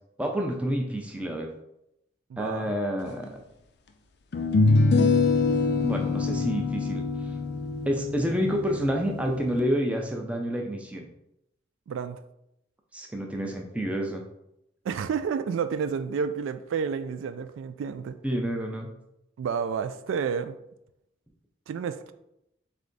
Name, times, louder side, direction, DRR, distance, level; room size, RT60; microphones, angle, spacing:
voice 1, 0.2-1.5 2.4-3.4 5.8-7.0 7.9-11.1 12.9-14.2 18.2-18.9, equal, 5° right, 1 dB, 0.5 m, -29 dB
voice 2, 2.3-2.7 11.9-12.2 14.8-18.2 19.4-20.6 21.7-22.1, right 6 dB, 85° right, 11 dB, 0.3 m, -30 dB
sound 1, 3.2-3.3 4.3-9.6, left 3 dB, 55° left, 0.4 m, -25 dB
3.5 x 3.3 x 3.9 m, 0.83 s
head